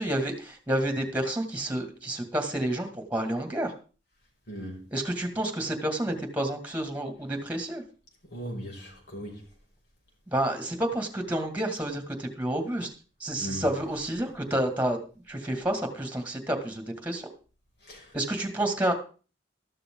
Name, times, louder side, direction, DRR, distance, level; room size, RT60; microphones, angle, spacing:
voice 1, 0.0-3.7 4.9-7.8 10.3-12.9 13.2-15.0 15.3-17.3 18.1-18.9, right 1 dB, 10° right, 6 dB, 2.3 m, -29 dB
voice 2, 4.5-4.9 8.3-9.4 13.4-13.7 17.8-18.1, equal, 65° left, 0 dB, 6.3 m, -38 dB
13.5 x 12.5 x 3.9 m, 0.37 s
head